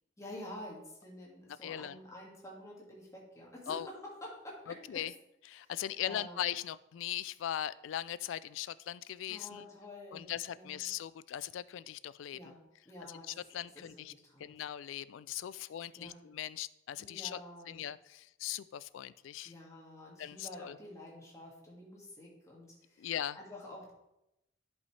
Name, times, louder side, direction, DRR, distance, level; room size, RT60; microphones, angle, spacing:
voice 1, 0.2-5.0 5.6-5.7 6.0-6.5 9.3-11.0 12.3-13.4 13.8-14.6 16.0-16.2 17.0-17.9 19.4-23.9, left 1 dB, 15° left, -4 dB, 1.9 m, -49 dB
voice 2, 1.6-2.0 3.7-3.9 4.9-5.1 5.5-9.6 10.1-12.4 13.3-14.1 14.4-17.4 17.7-19.5 20.2-20.8 23.0-23.4, left 11 dB, 80° left, 17 dB, 0.3 m, -39 dB
11.0 x 5.4 x 3.2 m, 0.88 s
head